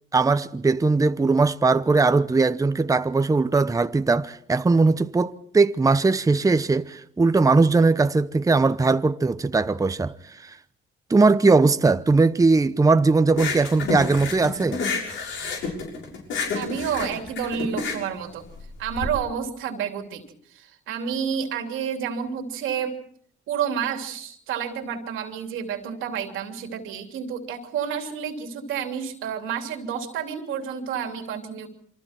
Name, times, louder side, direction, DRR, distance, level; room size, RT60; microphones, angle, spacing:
voice 1, 0.1-10.6 11.1-14.8, right 3 dB, 15° right, 0.8 m, -20 dB
sound 1, 13.3-19.1, left 4 dB, 75° left, 6.7 m, -29 dB
voice 2, 16.5-18.4 18.8-20.2 20.5-23.0 23.5-31.7, right 7 dB, 90° right, 3.1 m, -30 dB
27.5 x 24.5 x 4.5 m
cardioid pair, 90°, 20 cm